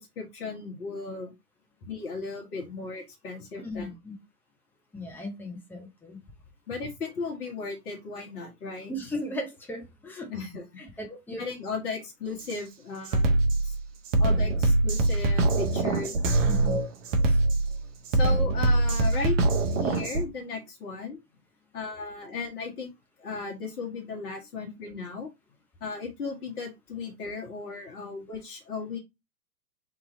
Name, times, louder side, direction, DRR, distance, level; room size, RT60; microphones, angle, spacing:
voice 1, 0.0-1.3 1.8-3.9 6.7-8.9 10.3-10.7 11.4-13.4 13.6-13.7 14.2-16.1 18.1-19.4 19.8-21.2 21.7-22.9 23.2-25.3 25.8-29.0, left 4 dB, 65° left, 1.6 m, -35 dB
voice 2, 3.6-4.2 4.9-6.2 8.9-10.3 10.8-11.4 16.5-16.8 17.2-17.4, left 1 dB, 5° left, 0.9 m, -37 dB
Drum kit, 12.4-12.6 13.1-20.2, right 2 dB, 50° right, 1.0 m, -23 dB
3.7 x 2.9 x 3.9 m
figure-of-eight pair, 110°, 48 cm